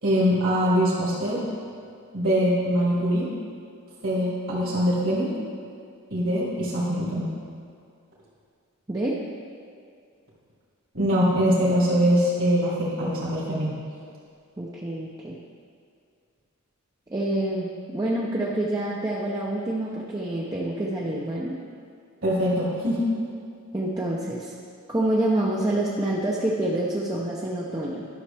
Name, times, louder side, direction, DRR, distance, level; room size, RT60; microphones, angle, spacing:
voice 1, 0.0-1.4 2.1-3.3 4.0-5.3 6.1-7.3 10.9-13.7 22.2-23.0, equal, 60° right, -8 dB, 2.0 m, -23 dB
voice 2, 8.9-9.2 14.6-15.3 17.1-21.6 23.7-24.5 24.9-28.1, right 1 dB, 15° right, -4 dB, 0.6 m, -27 dB
11.5 x 6.3 x 3.4 m, 2.3 s
head